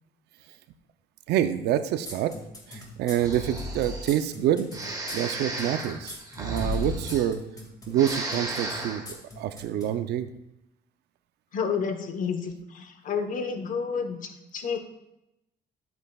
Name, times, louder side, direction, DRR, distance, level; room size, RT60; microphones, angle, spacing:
voice 1, 1.3-2.3 2.7-4.7 5.1-7.4 7.9-10.3, right 11 dB, 75° right, 11 dB, 0.6 m, -27 dB
sound 1, 2.1-9.9, left 2 dB, 20° left, 2.1 m, -43 dB
Breathing, 3.1-4.2 4.7-7.6 7.9-9.1, right 1 dB, 20° right, 1.5 m, -33 dB
voice 2, 11.5-14.2 14.5-14.8, left 6 dB, 50° left, 6 dB, 1.1 m, -30 dB
12.0 x 8.0 x 2.3 m, 0.88 s
cardioid pair, 110°, 17 cm